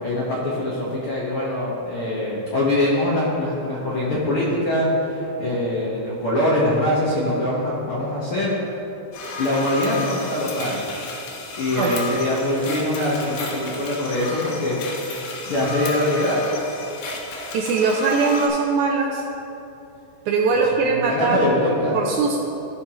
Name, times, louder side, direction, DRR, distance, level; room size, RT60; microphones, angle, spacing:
voice 1, 0.0-8.5 9.4-10.8 11.6-14.8 15.5-16.4 16.7-16.8 20.9-22.0, left 1 dB, 60° left, -7 dB, 1.5 m, -23 dB
sound 1, 9.1-18.5, left 2 dB, 75° left, 2.5 m, -32 dB
voice 2, 17.5-19.3 20.3-21.4 21.9-22.4, right 4 dB, 80° right, 0 dB, 1.8 m, -21 dB
15.0 x 5.5 x 2.9 m, 2.8 s
omnidirectional pair, 3.9 m